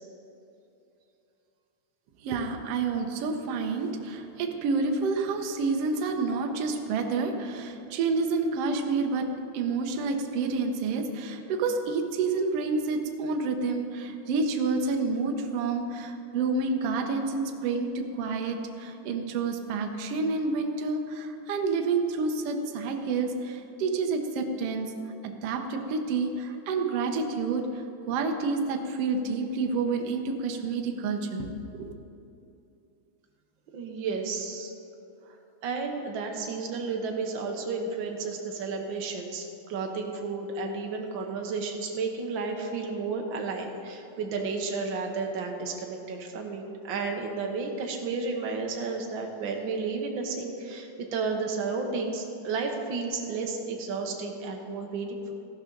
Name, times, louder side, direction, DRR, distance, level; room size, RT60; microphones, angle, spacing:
voice 1, 2.2-9.3 9.5-24.9 25.2-31.9, right 4 dB, 65° right, 4 dB, 1.7 m, -29 dB
voice 2, 33.7-34.7 35.2-35.4 35.6-55.3, right 4 dB, 90° right, 2 dB, 1.0 m, -32 dB
15.0 x 12.0 x 3.9 m, 2.8 s
omnidirectional pair, 3.6 m